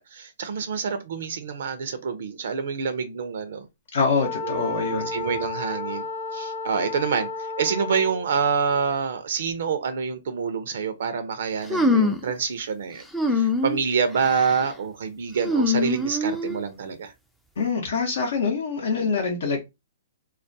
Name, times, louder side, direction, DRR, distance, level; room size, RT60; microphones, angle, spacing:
voice 1, 0.0-3.7 4.4-17.1, right 6 dB, 65° right, 0.4 m, -27 dB
voice 2, 3.9-5.1 17.6-19.6, left 5 dB, 70° left, 0.6 m, -25 dB
Wind instrument woodwind instrument, 4.2-8.3, left 4 dB, 40° left, 0.8 m, -32 dB
sound 1, 11.7-12.3 13.1-13.8 14.2-14.6 15.4-16.6, left 2 dB, 5° left, 0.3 m, -23 dB
2.3 x 2.2 x 2.5 m
hypercardioid pair, 140°, 0 cm